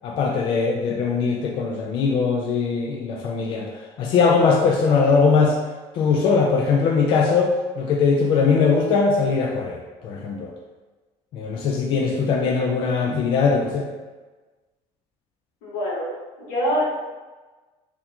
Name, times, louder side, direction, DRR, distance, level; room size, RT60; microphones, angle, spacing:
voice 1, 0.0-5.6 5.9-10.5 11.3-13.9, left 5 dB, 40° left, 0 dB, 0.3 m, -21 dB
voice 2, 15.6-16.1 16.4-16.9, equal, 80° left, -5 dB, 1.5 m, -24 dB
4.0 x 2.8 x 2.8 m, 1.3 s
cardioid pair, 175°, 13 cm